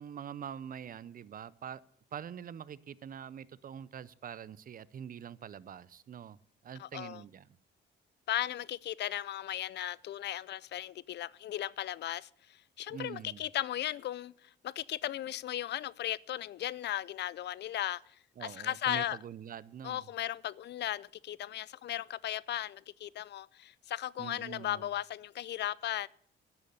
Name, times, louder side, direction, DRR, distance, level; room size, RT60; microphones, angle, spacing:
voice 1, 0.0-1.8 2.1-6.4 6.6-7.5 12.9-13.5 18.4-20.0 24.2-24.8, right 8 dB, 45° right, 0.6 m, -44 dB
voice 2, 6.8-7.2 8.3-19.2 19.8-26.1, left 12 dB, 60° left, 0.4 m, -36 dB
11.0 x 6.7 x 9.4 m
cardioid pair, 90°, 20 cm